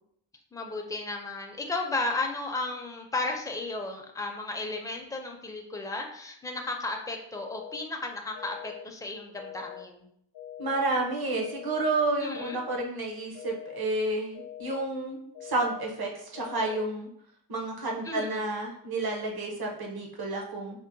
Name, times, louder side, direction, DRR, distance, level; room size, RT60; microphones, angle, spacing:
voice 1, 0.5-10.1 12.2-12.6 18.0-18.5, left 2 dB, 10° left, 2 dB, 0.5 m, -34 dB
sound 1, 7.3-7.8 8.3-8.8 9.3-9.8 10.3-10.8 11.3-11.8 12.3-12.8 13.3-13.8 14.3-14.8 15.3-15.8 16.3-16.8, left 11 dB, 65° left, 0.5 m, -43 dB
voice 2, 10.6-17.1 17.5-20.8, right 2 dB, 60° right, 0 dB, 0.9 m, -30 dB
5.3 x 2.1 x 2.6 m, 0.70 s
wide cardioid pair, 85°, 42 cm